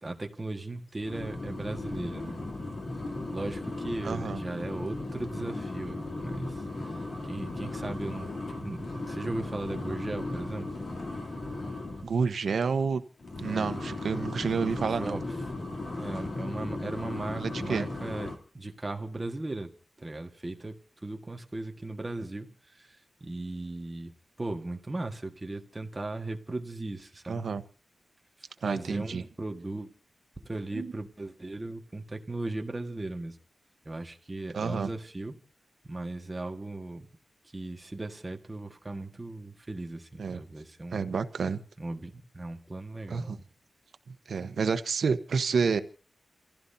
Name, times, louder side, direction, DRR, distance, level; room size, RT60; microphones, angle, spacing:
voice 1, 0.0-2.4 3.3-6.5 7.3-10.7 13.4-13.7 15.0-15.2 15.9-19.7 20.0-20.7 21.0-27.4 28.6-29.9 30.4-33.4 33.8-35.4 35.8-37.1 37.5-41.0 41.8-43.4, right 2 dB, 20° right, 1.6 m, -37 dB
sound 1, 1.0-12.1 13.2-18.4, left 2 dB, 55° left, 3.1 m, -36 dB
voice 2, 4.0-4.4 12.0-13.0 13.4-15.2 17.4-17.8 27.3-27.6 28.6-29.2 30.7-30.9 34.5-34.9 40.2-40.4 40.9-41.6 43.1-43.4 44.1-45.8, right 5 dB, 75° right, 1.1 m, -29 dB
29.0 x 15.5 x 2.8 m
wide cardioid pair, 160°, 0 cm